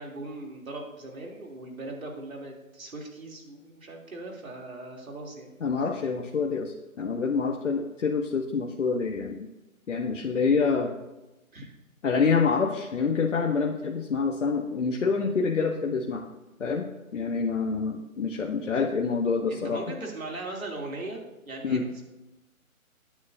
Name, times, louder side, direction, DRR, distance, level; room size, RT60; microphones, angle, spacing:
voice 1, 0.0-5.5 11.5-11.7 19.5-22.0, right 2 dB, 75° right, 0 dB, 3.2 m, -39 dB
voice 2, 5.6-9.5 9.9-10.9 12.0-16.2 16.6-19.8 21.6-21.8, left 5 dB, 60° left, 2 dB, 1.1 m, -27 dB
15.5 x 9.5 x 2.7 m, 1.0 s
figure-of-eight pair, 150°, 42 cm